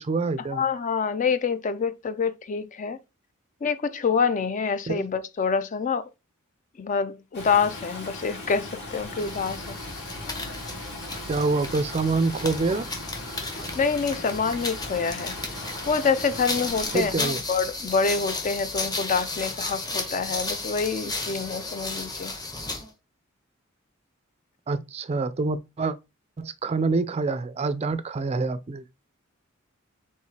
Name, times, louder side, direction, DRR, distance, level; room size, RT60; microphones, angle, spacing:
voice 1, 0.0-0.6 4.9-5.1 11.3-12.9 16.9-17.4 24.7-25.9 26.4-28.8, right 3 dB, 30° right, 0.4 m, -26 dB
voice 2, 0.5-3.0 3.6-6.1 6.8-9.8 13.7-15.4 15.9-22.3, left 5 dB, 35° left, 0.4 m, -26 dB
Stream, 7.3-17.1, left 2 dB, 55° left, 2.1 m, -38 dB
sound 1, 9.2-22.9, left 2 dB, 20° left, 0.8 m, -34 dB
4.7 x 3.6 x 2.8 m
head